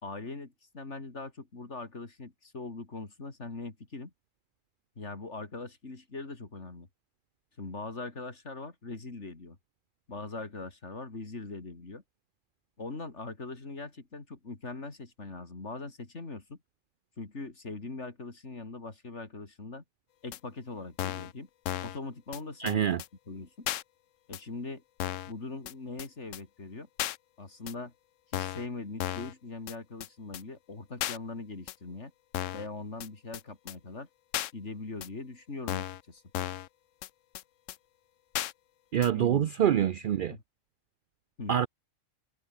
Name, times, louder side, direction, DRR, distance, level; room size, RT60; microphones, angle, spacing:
voice 1, 0.0-4.1 5.0-6.9 7.6-9.6 10.1-12.0 12.8-16.6 17.2-19.8 20.2-21.5 21.8-22.9 23.3-23.7 24.3-24.8 25.3-26.9 27.4-27.9 28.3-32.1 32.5-34.1 34.5-36.2 39.1-39.8 40.3-40.4 41.4-41.6, left 3 dB, 60° left, 3.4 m, -41 dB
sound 1, 20.3-20.4 21.0-21.3 21.7-22.0 22.3-22.4 22.7-22.8 23.0-23.1 23.7-23.8 24.3-24.4 25.0-25.3 25.7-25.8 26.0-26.1 26.3-26.4 27.0-27.2 27.7-27.8 28.3-28.7 29.0-29.3 29.7-29.8 30.0-30.1 30.3-30.4 31.0-31.2 31.7-31.8 32.3-32.7 33.0-33.1 33.3-33.4 33.7-33.8 34.3-34.5 35.0-35.1 35.7-36.0 36.3-36.7 37.0-37.1 37.3-37.4 37.7-37.8 38.3-38.5 39.0-39.1, left 13 dB, 75° left, 1.0 m, -34 dB
voice 2, 22.6-23.0 38.9-40.4 41.5-41.7, right 10 dB, 65° right, 0.5 m, -26 dB
omnidirectional pair, 1.3 m